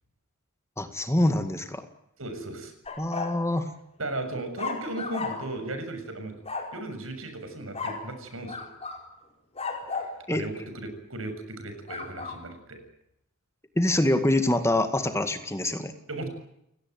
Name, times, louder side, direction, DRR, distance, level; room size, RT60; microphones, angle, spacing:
voice 1, 0.8-1.9 3.0-3.7 10.3-10.4 13.8-15.9, left 1 dB, 15° left, 8 dB, 2.1 m, -25 dB
voice 2, 2.2-2.7 4.0-6.4 6.7-8.7 9.9-12.8 16.1-16.3, right 2 dB, 75° right, 7 dB, 7.0 m, -36 dB
sound 1, 2.9-3.4 4.6-5.6 6.5-6.8 7.7-8.1 8.5-9.0 9.6-10.2 11.9-12.4, left 4 dB, 30° left, 4.8 m, -34 dB
30.0 x 18.0 x 9.4 m, 0.79 s
head